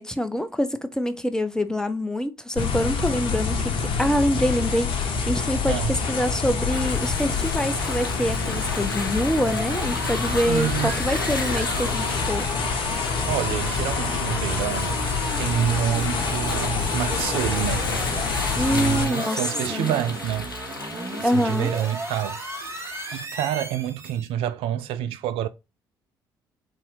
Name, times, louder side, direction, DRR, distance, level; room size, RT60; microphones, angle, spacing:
voice 1, 0.0-5.8 6.1-12.5 18.6-19.4 19.7-19.9 21.2-21.7, equal, 5° left, 0.6 m, -25 dB
sound 1, 2.6-19.1, left 5 dB, 50° left, 0.9 m, -27 dB
sound 2, 6.7-23.3, left 3 dB, 85° left, 0.4 m, -35 dB
sound 3, 9.4-24.3, right 2 dB, 25° right, 1.2 m, -36 dB
voice 2, 10.2-11.0 13.3-15.0 15.4-17.9 18.5-20.5 21.2-22.4 23.1-25.5, right 11 dB, 55° right, 0.4 m, -27 dB
3.9 x 2.8 x 4.7 m
figure-of-eight pair, 50°, 11 cm